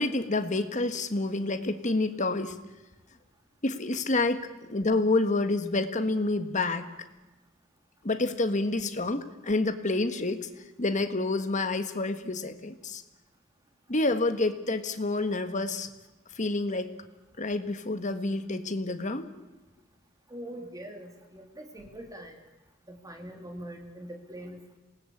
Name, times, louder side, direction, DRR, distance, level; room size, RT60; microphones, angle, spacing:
voice 1, 0.0-2.5 3.6-4.4 4.7-6.9 8.0-10.5 10.8-13.0 13.9-15.9 16.3-16.9 17.4-19.3, left 2 dB, 40° left, 9 dB, 1.5 m, -28 dB
voice 2, 20.3-22.4 22.9-24.8, right 1 dB, 15° right, 3 dB, 3.1 m, -43 dB
27.0 x 19.0 x 8.5 m, 1.1 s
head